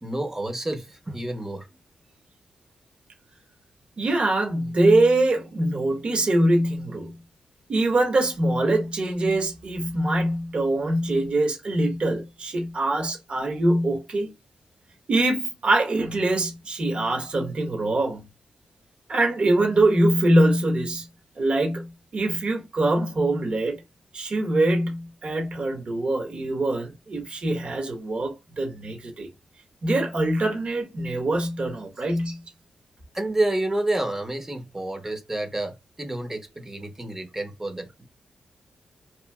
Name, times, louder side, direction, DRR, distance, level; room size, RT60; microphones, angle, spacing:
voice 1, 0.0-1.7 33.1-38.1, right 1 dB, 15° right, 0.8 m, -29 dB
voice 2, 4.0-7.2 7.7-14.3 15.1-18.3 19.1-21.1 21.4-23.8 24.1-29.3 29.8-32.4, right 2 dB, 50° right, 1.1 m, -23 dB
3.0 x 2.5 x 2.3 m
cardioid pair, 80°, 2 cm